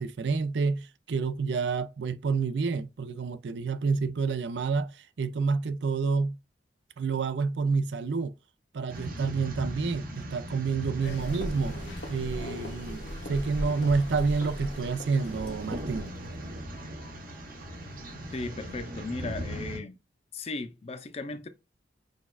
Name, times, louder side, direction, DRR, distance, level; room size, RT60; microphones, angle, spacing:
voice 1, 0.0-6.4 7.0-8.3 8.7-11.8 12.1-16.1, right 4 dB, 75° right, 0.4 m, -29 dB
sound 1, 8.9-19.8, equal, 55° right, 0.9 m, -39 dB
sound 2, 11.0-18.4, left 1 dB, 80° left, 1.1 m, -40 dB
voice 2, 18.3-20.0 20.3-21.5, left 3 dB, 35° left, 0.5 m, -36 dB
6.3 x 2.3 x 2.3 m
head